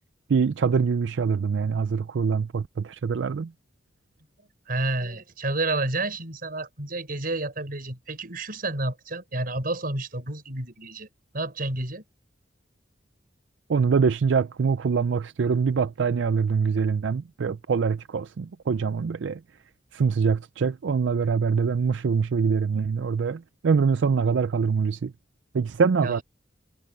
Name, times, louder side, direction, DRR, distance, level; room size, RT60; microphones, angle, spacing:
voice 1, 0.3-3.5 13.7-19.4 19.9-25.1 25.5-26.2, right 5 dB, 85° right, 0.4 m, -24 dB
voice 2, 4.4-11.1 11.3-12.0 26.0-26.2, right 2 dB, 55° right, 5.4 m, -30 dB
head